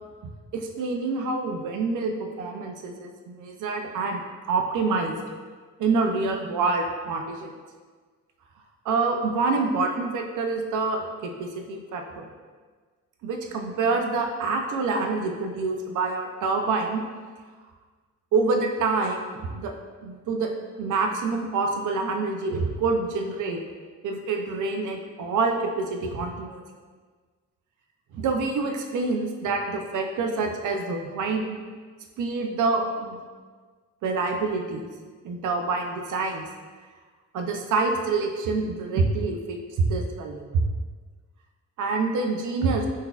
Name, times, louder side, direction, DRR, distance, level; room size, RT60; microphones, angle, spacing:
voice 1, 0.5-4.2 4.5-5.2 5.8-7.5 8.9-12.3 13.2-17.0 18.3-19.7 20.0-20.5 20.8-23.6 24.0-26.6 28.1-31.6 32.2-33.2 34.0-34.9 35.2-36.4 37.3-40.6 41.8-42.9, right 3 dB, 70° right, 3 dB, 0.5 m, -26 dB
3.8 x 2.6 x 2.3 m, 1.5 s
cardioid pair, 115°, 31 cm